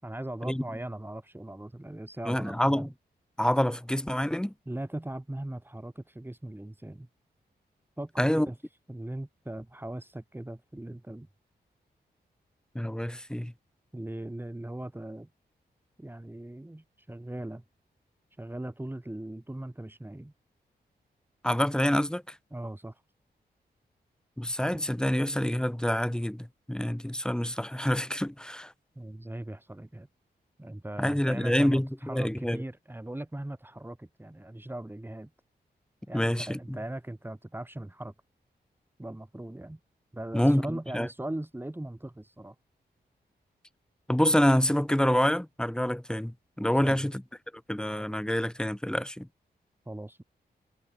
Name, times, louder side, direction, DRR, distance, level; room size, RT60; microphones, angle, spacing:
voice 1, 0.0-2.9 4.7-7.1 8.0-8.6 8.9-11.3 13.9-15.3 16.0-17.6 18.4-20.3 22.5-23.0 29.0-30.1 30.6-35.3 36.1-38.1 39.0-39.8 40.1-42.5 46.7-47.1 49.9-50.2, right 1 dB, 10° right, 6.4 m, -39 dB
voice 2, 2.3-2.9 3.4-4.5 8.2-8.5 12.8-13.5 21.4-22.2 24.4-28.7 31.0-32.6 36.1-36.8 40.3-40.7 40.9-41.1 44.1-47.2 47.7-49.3, equal, 5° left, 3.5 m, -27 dB
wide cardioid pair, 95°, 17 cm